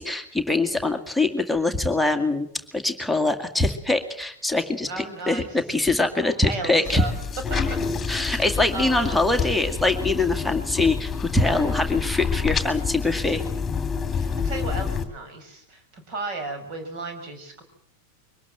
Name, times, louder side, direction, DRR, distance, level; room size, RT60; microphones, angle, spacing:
voice 1, 0.0-7.1 8.1-13.4, left 2 dB, ahead, 4 dB, 2.1 m, -23 dB
voice 2, 4.9-5.6 6.2-7.1 7.5-7.8 8.1-8.4 8.7-9.2 11.3-11.8 14.1-17.6, right 3 dB, 40° right, 6 dB, 6.1 m, -35 dB
sound 1, 6.9-15.0, left 6 dB, 15° left, 2.9 m, -28 dB
23.5 x 19.5 x 7.7 m, 0.68 s
figure-of-eight pair, 90°, 0 cm